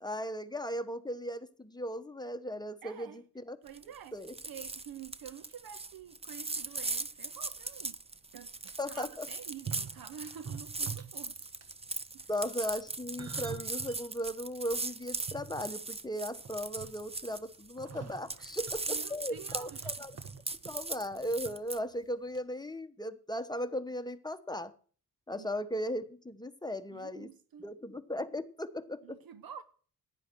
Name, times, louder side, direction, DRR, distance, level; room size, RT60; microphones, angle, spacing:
voice 1, 0.0-3.6 4.1-4.3 8.8-9.3 12.3-20.2 20.6-24.7 25.3-27.3 27.6-29.2, equal, 10° left, 1.0 m, -37 dB
voice 2, 2.8-3.2 3.6-4.2 4.5-8.0 8.3-8.5 8.9-11.5 12.1-12.3 18.4-18.6 18.9-19.9 20.6-20.7 25.4-25.5 26.9-27.7 29.0-29.6, right 8 dB, 70° right, 0.8 m, -48 dB
sound 1, 3.7-4.0 4.2-17.9 18.2-21.8, right 3 dB, 15° right, 0.6 m, -39 dB
sound 2, 7.8-7.9 8.4-8.8 9.5-11.3 11.6-11.9 12.7-14.0 14.5-14.6 15.1-16.1 16.4-17.2 17.8-21.5 21.8-22.0 22.3-22.4, right 6 dB, 45° right, 1.3 m, -45 dB
10.5 x 9.4 x 6.1 m
cardioid pair, 75°, 37 cm